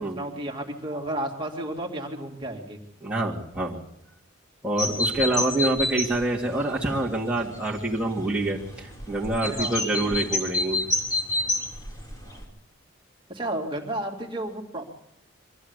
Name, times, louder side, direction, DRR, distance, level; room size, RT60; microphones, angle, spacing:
voice 1, 0.0-2.8 9.4-10.2 12.2-12.4 13.3-14.9, right 1 dB, 25° right, 0 dB, 2.7 m, -33 dB
voice 2, 3.0-3.8 4.6-10.8, right 1 dB, 5° right, -6 dB, 2.4 m, -26 dB
sound 1, 4.8-12.4, left 1 dB, 20° left, 3.3 m, -30 dB
23.5 x 15.0 x 8.2 m, 0.78 s
head